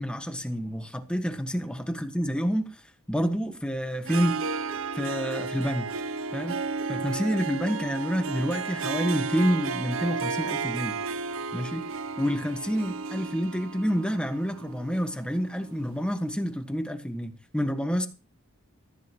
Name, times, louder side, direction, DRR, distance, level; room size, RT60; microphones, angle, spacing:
voice 1, 0.0-2.8 3.1-4.4 4.9-5.9 6.3-6.6 6.9-11.0 11.5-11.9 12.2-18.1, equal, 5° left, 1.4 m, -28 dB
Harp, 4.0-15.9, right 4 dB, 70° right, 0.6 m, -33 dB
14.5 x 14.5 x 3.0 m
head